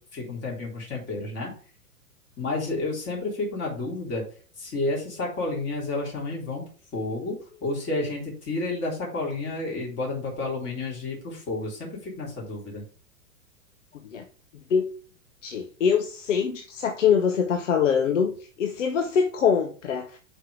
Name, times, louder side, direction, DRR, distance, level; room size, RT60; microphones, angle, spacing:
voice 1, 0.1-1.5 2.4-4.2 4.6-6.7 6.9-12.8, left 2 dB, 25° left, 3.4 m, -31 dB
voice 2, 15.4-20.2, left 7 dB, 60° left, 1.0 m, -24 dB
5.6 x 5.2 x 4.7 m
figure-of-eight pair, 105°, 42 cm